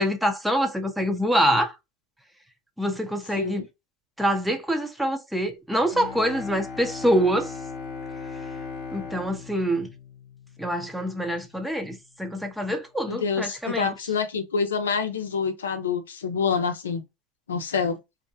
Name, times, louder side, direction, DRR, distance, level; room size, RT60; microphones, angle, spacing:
voice 1, 0.0-1.7 2.8-3.6 4.2-7.5 8.9-9.9 10.6-13.9, equal, 5° right, 0.6 m, -25 dB
Bowed string instrument, 5.9-11.0, left 5 dB, 55° left, 0.9 m, -38 dB
voice 2, 13.1-17.0 17.5-18.0, left 5 dB, 90° left, 0.5 m, -27 dB
2.6 x 2.1 x 2.6 m
hypercardioid pair, 95°, 0 cm